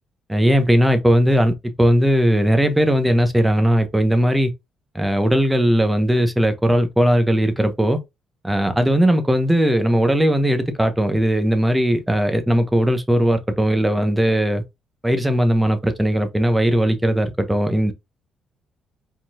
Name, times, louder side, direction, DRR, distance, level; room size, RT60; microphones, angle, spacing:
voice 1, 0.3-4.5 4.9-8.0 8.4-14.6 15.0-17.9, equal, 10° right, 1.0 m, -18 dB
5.1 x 3.8 x 2.4 m
cardioid pair, 90°, 0 cm